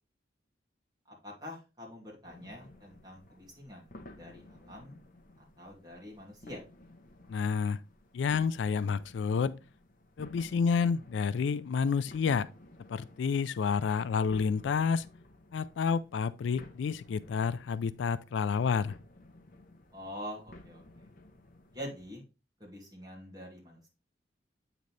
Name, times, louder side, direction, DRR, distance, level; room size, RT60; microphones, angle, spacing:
voice 1, 1.1-4.9 5.6-6.6 19.9-20.8 21.7-22.2 22.6-23.9, equal, 20° right, 2.5 m, -45 dB
sound 1, 2.2-22.1, left 1 dB, 45° left, 0.7 m, -55 dB
voice 2, 7.3-7.8 8.1-9.6 10.2-12.5 12.9-15.1 15.5-19.0, left 5 dB, 75° left, 0.3 m, -29 dB
8.4 x 4.0 x 3.2 m
head